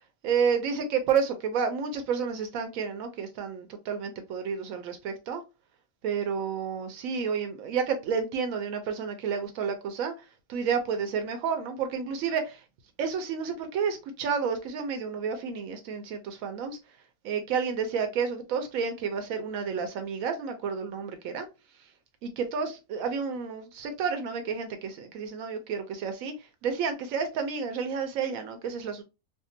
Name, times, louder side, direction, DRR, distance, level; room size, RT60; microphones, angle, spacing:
voice 1, 0.2-5.4 6.0-10.1 10.5-12.6 13.0-16.8 17.2-21.5 22.2-26.3 26.6-29.0, right 6 dB, 85° right, 1.0 m, -30 dB
3.6 x 2.0 x 2.6 m
omnidirectional pair, 1.4 m